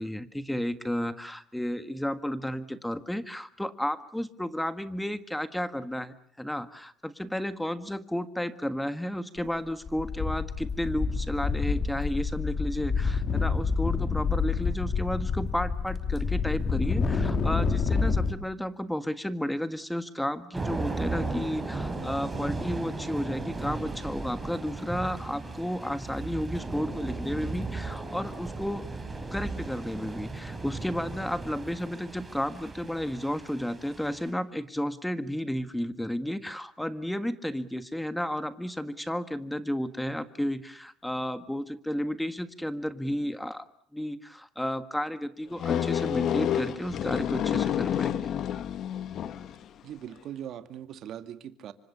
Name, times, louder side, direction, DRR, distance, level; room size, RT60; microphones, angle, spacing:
voice 1, 0.0-28.9 29.3-43.6 43.9-48.3, equal, 5° left, 12 dB, 1.6 m, -32 dB
sound 1, 9.4-9.6 9.9-18.3, left 4 dB, 40° left, 3.1 m, -28 dB
Thunder / Rain, 20.5-34.3, right 3 dB, 15° right, 4.8 m, -36 dB
sound 2, 45.6-49.6, left 9 dB, 55° left, 1.6 m, -29 dB
voice 2, 49.8-51.7, right 10 dB, 55° right, 10 dB, 2.1 m, -40 dB
27.0 x 25.0 x 6.9 m, 0.62 s
cardioid pair, 110°, 0 cm